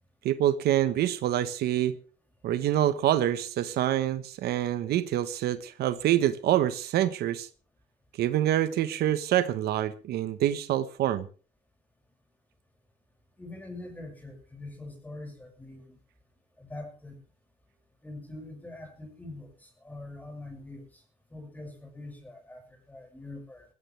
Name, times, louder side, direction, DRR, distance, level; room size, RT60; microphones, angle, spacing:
voice 1, 0.2-2.0 2.4-7.5 8.2-11.3, right 12 dB, 70° right, 12 dB, 1.2 m, -26 dB
voice 2, 13.4-16.0 16.6-17.2 18.0-20.9 21.3-22.6 22.9-23.6, left 2 dB, 10° left, 3 dB, 6.3 m, -43 dB
20.5 x 15.0 x 3.4 m, 0.37 s
cardioid pair, 110°, 17 cm